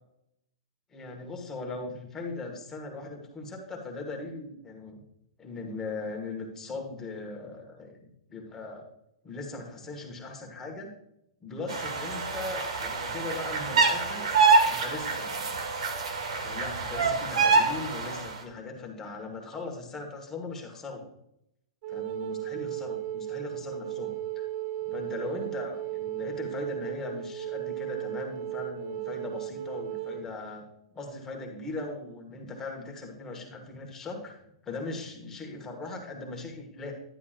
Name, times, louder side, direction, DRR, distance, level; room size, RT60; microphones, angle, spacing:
voice 1, 0.9-5.0 5.4-8.9 9.2-10.9 11.4-14.3 14.6-15.6 16.4-21.0 21.9-24.5 24.9-30.7 30.9-34.4 34.6-36.9, left 3 dB, 15° left, 1 dB, 1.4 m, -39 dB
sound 1, 11.7-18.3, right 4 dB, 80° right, 1.6 m, -26 dB
Wind instrument woodwind instrument, 21.8-30.3, right 12 dB, 40° right, 0.5 m, -35 dB
10.0 x 8.2 x 2.5 m, 0.77 s
hypercardioid pair, 155°, 3 cm